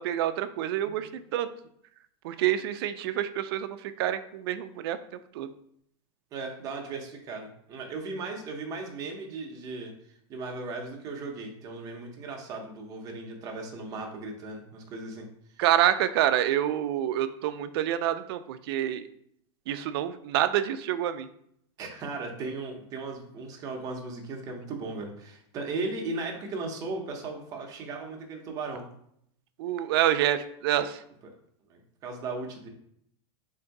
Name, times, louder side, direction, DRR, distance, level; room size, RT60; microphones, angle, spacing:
voice 1, 0.0-1.5 2.2-5.0 5.3-5.5 15.6-19.0 19.7-21.3 29.6-31.0, right 11 dB, 55° right, 11 dB, 0.4 m, -27 dB
voice 2, 6.3-9.9 10.3-15.3 15.5-15.6 21.8-28.8 31.7-32.7, right 3 dB, 25° right, 2 dB, 0.7 m, -37 dB
3.7 x 2.6 x 4.5 m, 0.70 s
supercardioid pair, 170°, 15 cm